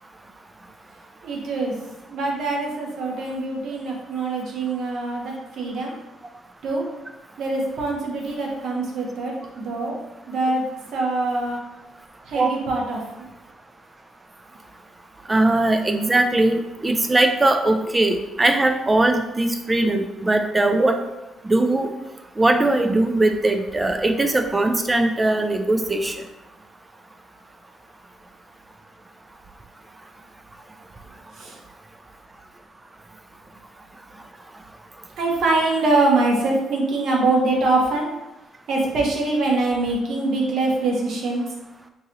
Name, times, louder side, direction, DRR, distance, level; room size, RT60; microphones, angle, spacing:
voice 1, 1.2-1.7 2.1-5.9 6.6-6.8 7.4-10.0 10.3-10.6 10.9-11.6 12.3-13.3 31.4-31.5 35.2-38.1 38.7-41.4, right 2 dB, 70° right, -1 dB, 0.9 m, -23 dB
voice 2, 15.3-21.0 21.4-21.9 22.4-26.2, right 2 dB, 20° right, 6 dB, 0.4 m, -20 dB
3.8 x 2.7 x 2.9 m, 0.99 s
cardioid pair, 90°, 0 cm